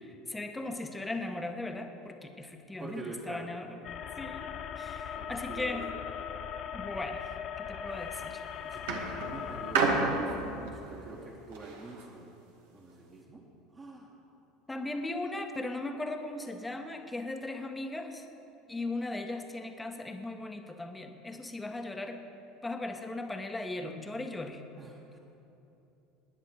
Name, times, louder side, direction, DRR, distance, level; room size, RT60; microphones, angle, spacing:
voice 1, 0.3-3.8 4.2-5.9 6.7-8.4 14.7-18.2 18.7-22.2 22.6-24.6, left 2 dB, 10° left, 5 dB, 1.3 m, -38 dB
voice 2, 2.8-3.5 5.1-5.9 8.6-12.3 12.7-13.4 13.7-14.1 24.8-25.2, right 3 dB, 30° right, -4 dB, 1.9 m, -45 dB
sound 1, 3.8-9.7, left 8 dB, 45° left, 0.7 m, -39 dB
sound 2, 7.9-8.2 8.9-12.1 12.9-13.0, right 3 dB, 70° right, 1.8 m, -31 dB
20.0 x 10.0 x 4.8 m, 3.0 s
figure-of-eight pair, 70°, 0 cm